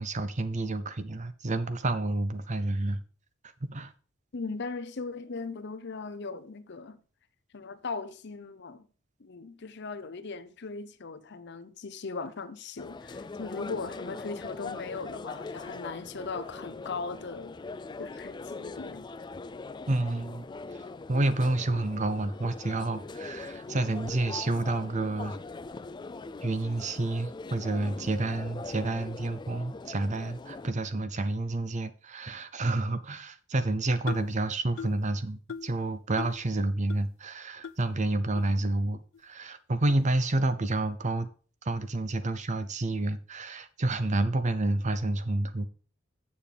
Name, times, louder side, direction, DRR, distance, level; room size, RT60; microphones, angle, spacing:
voice 1, 0.0-3.0 3.6-3.9 19.9-20.5 21.1-25.4 26.4-41.3 41.6-45.7, right 2 dB, 35° right, 0.7 m, -29 dB
voice 2, 4.3-7.0 7.5-8.9 9.2-17.5 18.0-19.1, left 4 dB, 60° left, 0.7 m, -38 dB
sound 1, 12.8-30.7, left 3 dB, 20° left, 0.4 m, -41 dB
sound 2, 34.1-34.4 34.8-35.1 35.5-35.8 36.2-36.5 36.9-37.0 37.6-37.8 38.4-38.5 39.1-39.2 39.9-40.0, left 6 dB, 85° left, 0.4 m, -39 dB
7.6 x 7.0 x 5.0 m
head